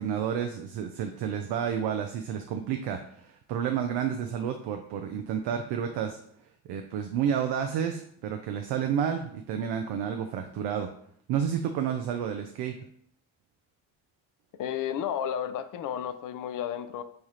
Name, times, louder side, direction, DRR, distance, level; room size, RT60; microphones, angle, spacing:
voice 1, 0.0-6.2 6.7-10.9 11.3-12.7, right 8 dB, 75° right, 5 dB, 0.5 m, -30 dB
voice 2, 14.6-17.0, left 9 dB, 50° left, 11 dB, 0.5 m, -32 dB
3.3 x 2.3 x 4.2 m, 0.64 s
supercardioid pair, 50°, 41 cm